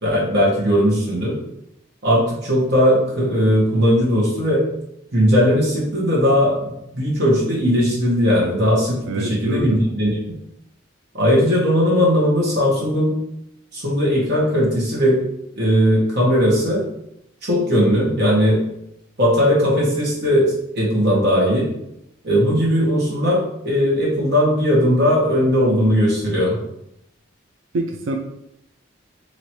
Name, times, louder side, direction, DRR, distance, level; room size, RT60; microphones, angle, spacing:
voice 1, 0.0-1.4 2.0-4.6 5.1-10.2 11.1-13.2 13.7-15.2 15.5-16.9 17.4-18.6 19.2-21.7 22.2-26.6, equal, 55° right, -5 dB, 1.4 m, -18 dB
voice 2, 9.1-9.8 27.7-28.2, right 2 dB, 80° right, 4 dB, 0.4 m, -25 dB
3.1 x 3.0 x 4.3 m, 0.80 s
head